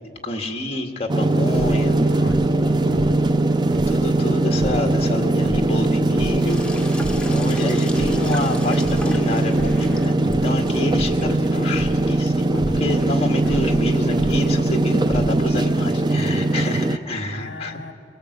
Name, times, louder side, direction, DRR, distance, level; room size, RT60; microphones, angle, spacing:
voice 1, 0.2-2.0 2.8-3.2 3.9-6.6 7.3-10.2 10.4-17.8, left 1 dB, 35° left, 3 dB, 2.0 m, -28 dB
sound 1, 1.1-17.0, right 2 dB, 25° right, 0.5 m, -20 dB
sound 2, 1.5-1.9 2.2-2.6 2.9-4.0 4.5-4.8 5.4-6.5 6.8-7.4 7.7-8.5 8.8-9.2 9.5-9.9 10.2-10.6 10.9-11.3 11.7-12.1 12.5-12.8 13.4-14.5 15.0-15.6, equal, 70° right, 3.7 m, -30 dB
voice 2, 2.2-3.1 11.2-11.4 13.4-13.6 17.3-17.9, left 3 dB, 70° left, 6 dB, 1.4 m, -40 dB
Sink (filling or washing), 6.4-14.2, left 2 dB, 5° left, 1.1 m, -39 dB
22.5 x 22.0 x 8.2 m, 2.5 s
head